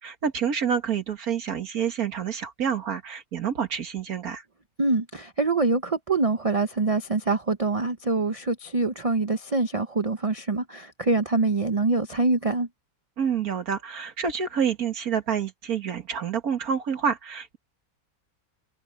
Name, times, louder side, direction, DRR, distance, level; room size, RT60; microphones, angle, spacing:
voice 1, 0.0-4.4 13.2-17.6, right 7 dB, 70° right, 2.1 m, -28 dB
voice 2, 4.8-12.7, right 3 dB, 30° right, 0.7 m, -25 dB
omnidirectional pair, 1.6 m